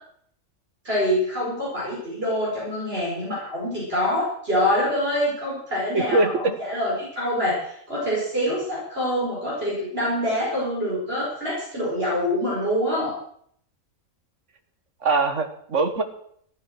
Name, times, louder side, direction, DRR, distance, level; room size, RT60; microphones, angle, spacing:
voice 1, 0.8-13.1, equal, 45° right, -6 dB, 5.5 m, -25 dB
voice 2, 5.9-6.5 15.0-16.0, right 3 dB, 60° right, 7 dB, 1.8 m, -22 dB
14.5 x 11.5 x 6.3 m, 0.65 s
omnidirectional pair, 1.5 m